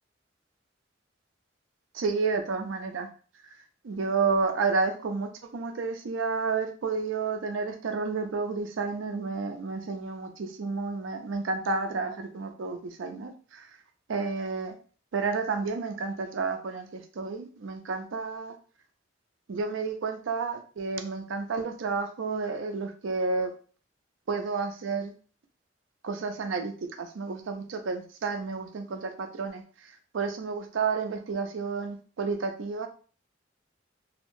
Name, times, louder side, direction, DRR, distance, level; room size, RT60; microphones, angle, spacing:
voice 1, 1.9-3.1 3.8-13.7 14.1-14.8 15.1-18.5 19.5-23.5 24.3-25.1 26.0-29.6 30.1-32.9, right 4 dB, 85° right, 6 dB, 0.5 m, -31 dB
2.7 x 2.1 x 3.0 m, 0.40 s
head